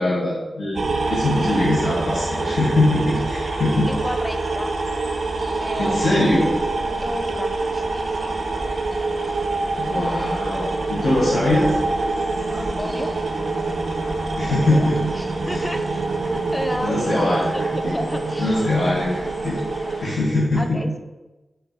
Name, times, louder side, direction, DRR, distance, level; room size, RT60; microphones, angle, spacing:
voice 1, 0.0-3.9 5.8-6.5 9.7-10.6 10.9-11.7 14.4-15.0 15.4-15.6 16.8-17.7 18.4-19.6 20.0-20.8, left 1 dB, 80° left, -6 dB, 0.8 m, -22 dB
sound 1, 0.7-20.0, right 3 dB, 75° right, 0.4 m, -26 dB
sound 2, 1.0-20.1, equal, 30° left, 1.1 m, -39 dB
voice 2, 3.9-4.7 5.6-6.3 7.0-8.4 12.5-13.1 14.4-14.9 15.2-18.6 20.5-21.0, left 1 dB, 15° left, 6 dB, 0.3 m, -32 dB
sound 3, 6.2-17.7, equal, 60° left, 1.4 m, -40 dB
4.4 x 3.2 x 2.3 m, 1.1 s
wide cardioid pair, 80°, 0 cm